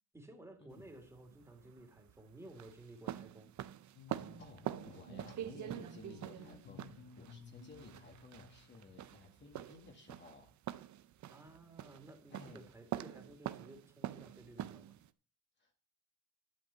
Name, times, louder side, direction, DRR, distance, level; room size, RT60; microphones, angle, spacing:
voice 1, 0.1-3.5 11.3-15.0, right 2 dB, 10° right, 2.6 m, -55 dB
sound 1, 0.7-15.1, right 12 dB, 60° right, 0.7 m, -45 dB
sound 2, 3.9-9.1, left 4 dB, 90° left, 1.5 m, -56 dB
voice 2, 4.1-10.5 12.3-12.6 15.6-15.7, left 3 dB, 35° left, 2.0 m, -56 dB
11.5 x 5.3 x 8.3 m
cardioid pair, 120°, 32 cm